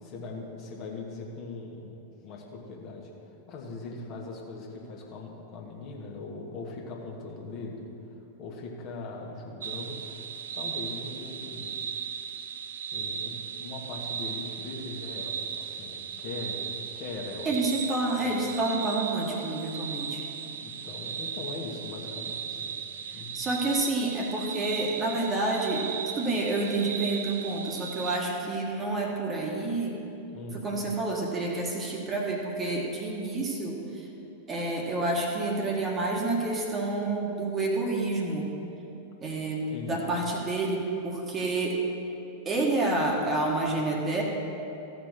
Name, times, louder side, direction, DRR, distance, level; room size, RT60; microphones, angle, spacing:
voice 1, 0.0-3.1 3.5-7.9 8.4-10.2 10.5-11.8 12.9-16.6 16.9-17.6 18.2-18.4 20.6-22.8 23.1-23.5 30.3-30.6 39.7-40.0, left 3 dB, 40° left, -1 dB, 1.7 m, -40 dB
sound 1, 9.6-28.2, right 7 dB, 60° right, 0.5 m, -37 dB
voice 2, 17.4-20.2 23.1-30.0 30.5-34.1 34.5-38.5 39.2-41.8 42.4-44.2, right 2 dB, 25° right, 0 dB, 1.6 m, -29 dB
15.0 x 5.1 x 6.5 m, 2.9 s
figure-of-eight pair, 90°, 0 cm